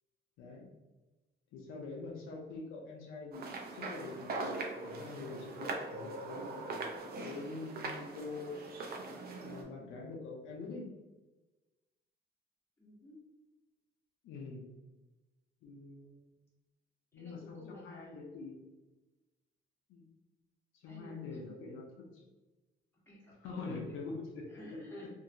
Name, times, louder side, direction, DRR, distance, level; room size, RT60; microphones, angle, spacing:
voice 1, 0.4-0.7 1.5-4.5 4.8-8.7 9.4-10.9 14.2-14.7 15.6-16.2 17.1-18.6 19.9-20.0 20.7-22.2 23.4-24.5 25.0-25.1, left 3 dB, 85° left, 0 dB, 0.5 m, -45 dB
sound 1, 3.3-9.6, right 3 dB, 50° right, 0.6 m, -41 dB
voice 2, 12.8-13.2 17.1-18.2 20.9-21.6 23.0-24.1 24.5-25.1, left 1 dB, 10° left, -7 dB, 1.5 m, -52 dB
2.7 x 2.6 x 2.6 m, 1.1 s
cardioid pair, 90°, 20 cm